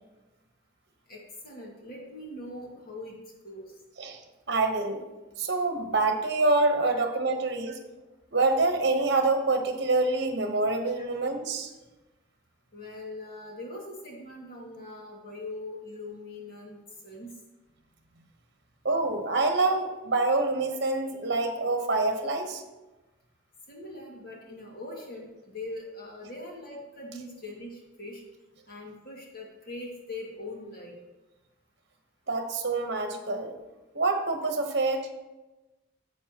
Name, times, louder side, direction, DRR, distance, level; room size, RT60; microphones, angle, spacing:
voice 1, 1.1-3.2 3.4-3.7 6.9-7.0 11.0-11.1 12.7-16.8 17.0-17.3 23.7-28.2 28.7-31.0, left 2 dB, 45° left, -2 dB, 2.1 m, -41 dB
voice 2, 4.5-5.0 5.4-7.7 8.3-11.7 18.8-22.6 32.3-33.5 33.9-35.1, right 3 dB, 55° right, 5 dB, 1.1 m, -26 dB
11.0 x 7.8 x 3.0 m, 1.1 s
head